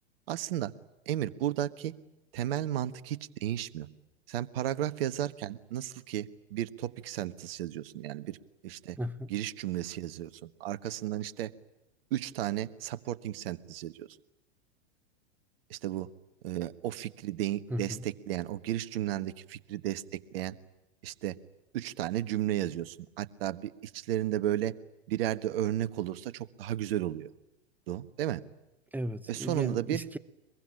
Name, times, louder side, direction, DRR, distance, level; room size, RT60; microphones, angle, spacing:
voice 1, 0.3-0.7 1.1-1.9 2.3-3.9 4.3-8.4 8.6-9.0 9.3-11.5 12.1-14.1 15.7-16.1 16.4-20.5 21.0-21.4 21.7-24.7 25.1-27.3 27.9-28.4 29.3-30.2, right 12 dB, 60° right, 1.5 m, -33 dB
voice 2, 9.0-9.3 17.7-18.1 28.9-30.2, equal, 5° right, 1.0 m, -35 dB
23.0 x 23.0 x 10.0 m
hypercardioid pair, 105°, 33 cm